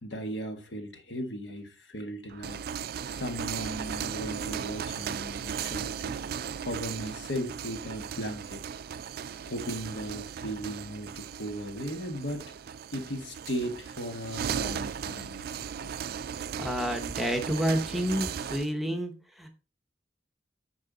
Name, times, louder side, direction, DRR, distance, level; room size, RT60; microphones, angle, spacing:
voice 1, 0.0-2.6 3.1-6.2 6.6-8.6 9.4-12.5 12.9-15.9 18.9-19.0, equal, 65° left, 1.6 m, -37 dB
sound 1, 2.3-18.7, right 7 dB, 55° right, 0.3 m, -37 dB
voice 2, 16.6-19.5, equal, ahead, 1.0 m, -29 dB
9.8 x 4.9 x 4.0 m
head